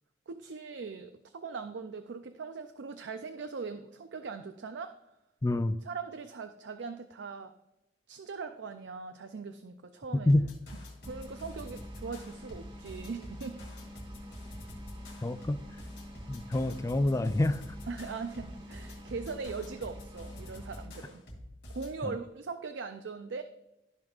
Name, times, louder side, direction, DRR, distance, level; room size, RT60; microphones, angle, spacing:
voice 1, 0.3-4.9 5.8-7.5 8.1-10.3 11.1-13.7 17.9-21.2 21.7-23.4, right 4 dB, 75° right, 8 dB, 0.4 m, -40 dB
voice 2, 5.4-5.8 10.3-10.4 15.2-15.6 16.3-17.6, left 1 dB, 15° left, 12 dB, 0.3 m, -27 dB
sound 1, 10.3-22.0, left 1 dB, 70° left, 2.6 m, -46 dB
sound 2, 11.0-20.9, equal, 30° right, 1.4 m, -49 dB
14.0 x 5.2 x 2.4 m, 0.94 s
head